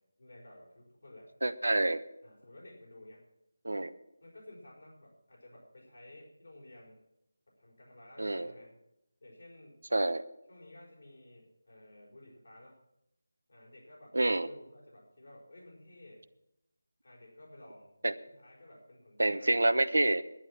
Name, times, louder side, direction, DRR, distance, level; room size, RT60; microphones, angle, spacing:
voice 1, 0.0-1.3 2.2-3.2 4.2-7.0 7.5-8.7 9.2-9.8 10.5-12.8 13.5-14.2 14.4-16.2 17.0-17.9 18.3-19.5, left 1 dB, 70° left, -2 dB, 4.6 m, -54 dB
voice 2, 1.4-2.0 3.6-3.9 8.2-8.5 9.9-10.2 14.1-14.5 18.0-18.1 19.2-20.2, right 2 dB, 80° right, 13 dB, 0.9 m, -27 dB
11.0 x 9.2 x 7.2 m, 0.87 s
figure-of-eight pair, 165°, 0 cm